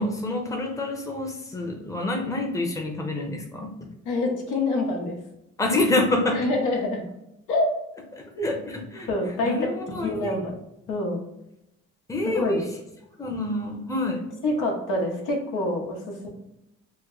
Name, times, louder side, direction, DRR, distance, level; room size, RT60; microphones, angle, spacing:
voice 1, 0.0-3.7 5.6-6.5 8.2-9.1 9.4-10.4 12.1-12.6 13.2-14.2, left 2 dB, 10° left, 1 dB, 0.7 m, -27 dB
voice 2, 4.0-5.2 6.3-7.0 7.5-7.7 8.4-8.5 9.1-9.6 10.0-10.5 10.9-11.2 12.3-12.6 14.4-16.3, left 2 dB, 85° left, 0 dB, 0.9 m, -26 dB
3.2 x 2.1 x 3.8 m, 0.87 s
cardioid pair, 90°, 30 cm